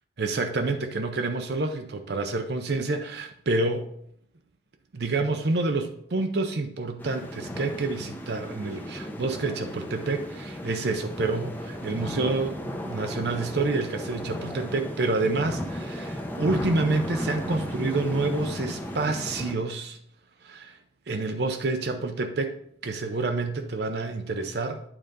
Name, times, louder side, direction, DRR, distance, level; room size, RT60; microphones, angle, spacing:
voice 1, 0.2-3.9 4.9-20.0 20.4-20.8 21.1-22.6 22.8-24.8, right 3 dB, 60° right, 6 dB, 0.6 m, -28 dB
sound 1, 7.0-19.5, equal, 10° left, 0.7 m, -35 dB
8.8 x 3.9 x 5.3 m, 0.69 s
head